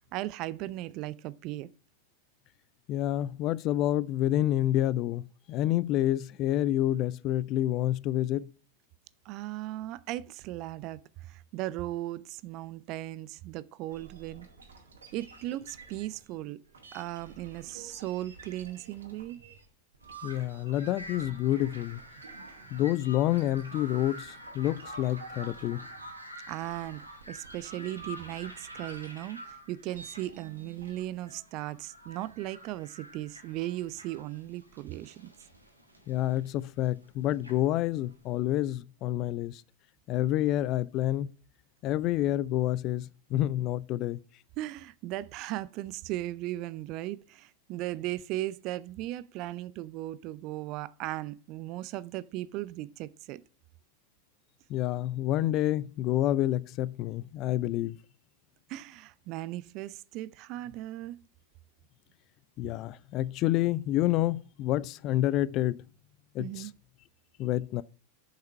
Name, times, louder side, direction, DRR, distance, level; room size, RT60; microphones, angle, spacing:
voice 1, 0.1-1.7 9.3-14.5 15.1-16.6 16.9-19.4 22.5-22.7 26.5-35.3 44.6-53.4 58.7-61.2 66.4-66.7, right 15 dB, 40° right, 0.4 m, -37 dB
voice 2, 2.9-5.2 5.5-8.5 20.2-22.0 22.7-25.9 36.1-39.6 40.1-41.3 41.8-44.2 54.7-58.0 62.6-65.8 66.3-66.7 67.4-67.8, left 13 dB, 40° left, 0.4 m, -28 dB
sound 1, 13.9-22.9 23.2-31.0, right 4 dB, 70° right, 1.9 m, -52 dB
sound 2, 20.0-38.3, equal, 90° right, 1.6 m, -48 dB
7.5 x 5.7 x 5.5 m
figure-of-eight pair, 90°, 0 cm